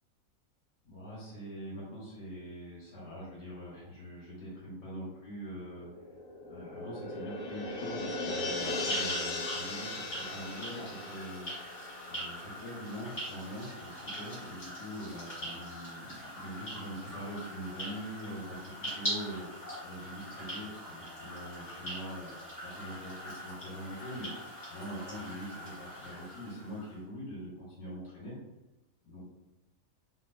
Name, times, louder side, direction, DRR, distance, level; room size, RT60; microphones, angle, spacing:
voice 1, 0.8-6.0 6.5-11.5 12.1-22.3 22.6-24.3 24.7-28.4 29.0-29.3, equal, 85° left, -9 dB, 1.9 m, -43 dB
sound 1, 5.8-12.8 13.1-13.2, left 2 dB, 65° left, 0.9 m, -38 dB
sound 2, 8.5-26.9, equal, 35° left, 1.8 m, -42 dB
3.8 x 2.4 x 2.6 m, 1.0 s
omnidirectional pair, 1.9 m